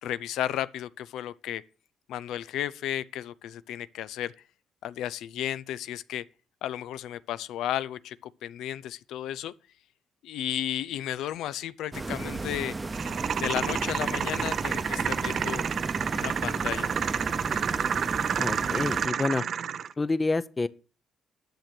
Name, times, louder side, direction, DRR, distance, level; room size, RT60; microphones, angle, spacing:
voice 1, 0.0-1.6 2.1-4.3 4.8-6.2 6.6-9.5 10.2-12.7 13.4-15.6 16.1-17.0 17.3-17.7, left 11 dB, 85° left, 0.4 m, -33 dB
sound 1, 11.9-19.1, right 3 dB, 25° right, 0.8 m, -34 dB
sound 2, 12.9-19.9, right 8 dB, 60° right, 0.6 m, -30 dB
voice 2, 18.4-19.4 20.0-20.7, left 3 dB, 25° left, 0.6 m, -28 dB
10.5 x 6.7 x 5.9 m
cardioid pair, 90°, 0 cm